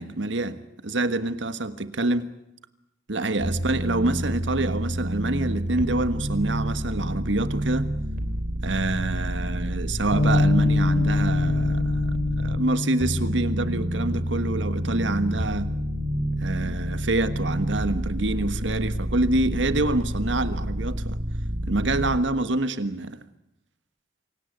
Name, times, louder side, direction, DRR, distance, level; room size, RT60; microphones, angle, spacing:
voice 1, 0.0-2.3 3.1-7.9 8.6-15.7 16.4-21.2 21.7-23.2, right 2 dB, 85° right, 1.5 m, -26 dB
sound 1, 3.4-12.6 13.0-22.2, right 1 dB, 50° right, 3.2 m, -29 dB
Bass guitar, 10.1-16.4, left 3 dB, 55° left, 4.1 m, -26 dB
26.5 x 17.5 x 9.4 m
head